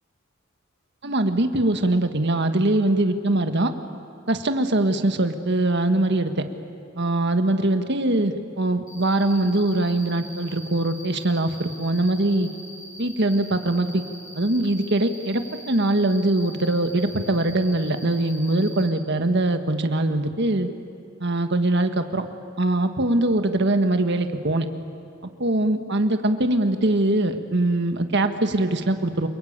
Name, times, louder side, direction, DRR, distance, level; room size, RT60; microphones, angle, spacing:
voice 1, 1.0-3.7 4.3-6.4 7.0-12.5 13.0-14.0 14.4-20.7 21.2-22.2 22.6-24.7 25.4-29.3, right 2 dB, 55° right, 7 dB, 1.7 m, -22 dB
Cricket, 8.9-18.9, equal, 40° left, 4.9 m, -43 dB
29.0 x 23.0 x 8.9 m, 2.4 s
head